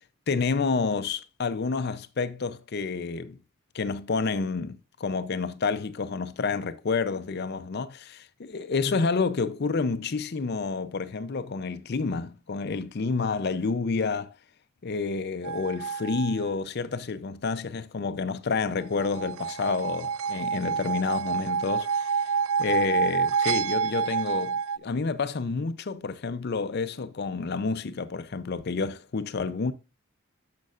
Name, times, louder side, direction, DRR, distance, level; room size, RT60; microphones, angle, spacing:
voice 1, 0.3-3.4 3.7-14.3 14.8-22.1 22.6-29.7, left 4 dB, 50° left, 0.5 m, -29 dB
sound 1, 15.4-16.5 18.9-24.8, right 6 dB, 75° right, 0.4 m, -28 dB
10.5 x 6.5 x 2.4 m
head